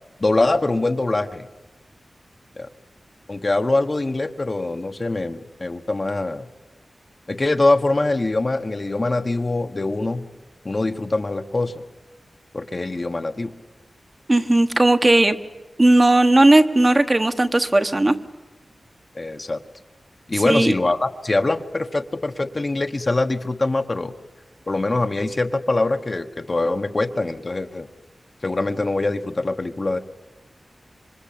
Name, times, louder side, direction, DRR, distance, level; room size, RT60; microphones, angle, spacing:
voice 1, 0.2-1.5 2.6-2.7 3.3-6.5 7.3-10.2 10.6-11.7 12.5-13.5 19.1-19.6 20.3-24.1 24.7-27.9 28.4-30.0, left 2 dB, 35° left, 5 dB, 1.2 m, -23 dB
voice 2, 14.3-15.4 15.8-18.1 20.4-20.7, right 2 dB, 25° right, 9 dB, 1.4 m, -16 dB
26.5 x 25.0 x 8.7 m, 1.1 s
wide cardioid pair, 110°, 0 cm